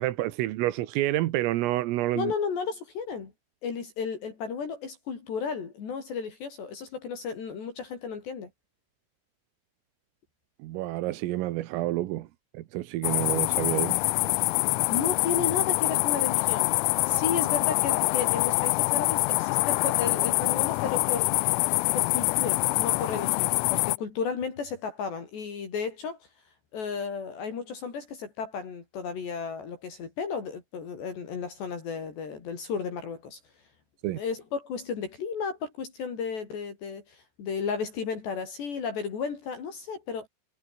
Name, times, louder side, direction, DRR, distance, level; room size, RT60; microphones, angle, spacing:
voice 1, 0.0-2.3 10.6-12.3 12.5-14.0 34.0-34.2, right 16 dB, 85° right, 3.9 m, -28 dB
voice 2, 2.1-3.3 3.6-8.5 14.9-16.7 17.1-21.3 21.9-26.2 26.7-33.4 34.2-40.3, left 6 dB, 55° left, 6.3 m, -33 dB
sound 1, 13.0-24.0, left 24 dB, 85° left, 3.3 m, -25 dB
omnidirectional pair, 5.9 m